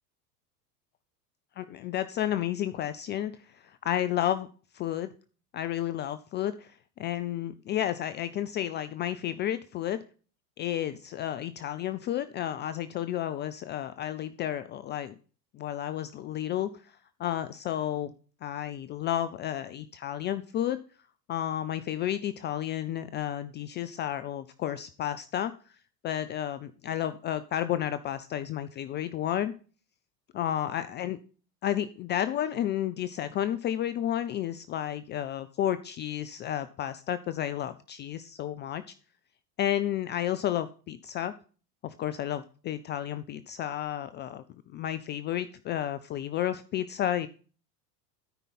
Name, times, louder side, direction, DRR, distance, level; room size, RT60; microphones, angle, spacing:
voice 1, 1.6-4.5 4.7-5.1 5.5-10.0 10.6-15.1 15.5-18.1 18.4-20.8 21.3-25.5 26.0-29.5 30.3-31.2 31.6-38.9 39.6-41.3 41.8-47.3, left 11 dB, 25° left, 13 dB, 0.4 m, -32 dB
12.5 x 5.3 x 4.1 m, 0.37 s
hypercardioid pair, 85°, 50 cm